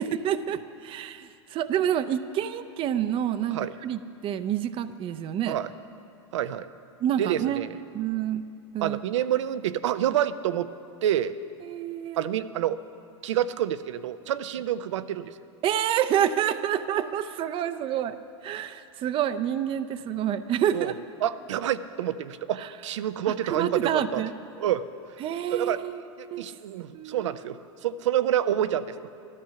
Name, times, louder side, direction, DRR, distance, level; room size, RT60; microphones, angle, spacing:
voice 1, 0.0-5.6 7.0-7.6 7.9-8.4 8.7-9.0 11.6-12.3 15.6-18.2 18.4-20.9 23.4-24.3 25.2-25.9 26.3-26.4 26.9-27.3, right 10 dB, 35° right, 11 dB, 0.6 m, -28 dB
voice 2, 6.3-6.7 7.2-7.8 8.8-10.7 11.0-11.3 12.2-12.8 13.2-15.3 20.7-20.9 21.2-24.2 24.6-24.9 25.5-25.8 26.2-29.1, right 11 dB, 80° right, 13 dB, 0.6 m, -28 dB
13.0 x 13.0 x 5.7 m, 2.5 s
hypercardioid pair, 110°, 15 cm